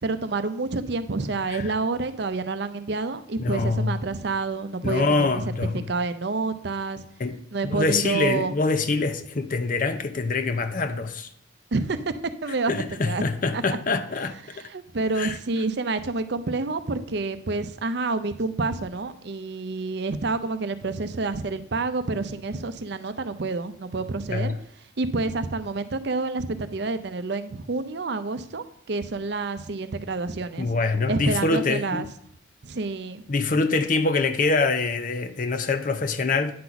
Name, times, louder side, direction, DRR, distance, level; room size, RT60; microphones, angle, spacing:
voice 1, 0.0-7.1 7.5-8.6 11.7-12.1 12.4-12.7 13.0-13.2 13.5-13.6 14.5-24.5 25.0-30.7 31.1-32.1 32.6-33.2, right 3 dB, 55° right, 0.6 m, -28 dB
voice 2, 3.4-4.0 4.8-5.9 7.2-7.4 7.6-11.3 12.7-14.4 15.2-15.4 24.3-24.6 30.6-32.0 33.3-36.5, left 3 dB, 40° left, 0.5 m, -25 dB
9.4 x 4.0 x 5.8 m
head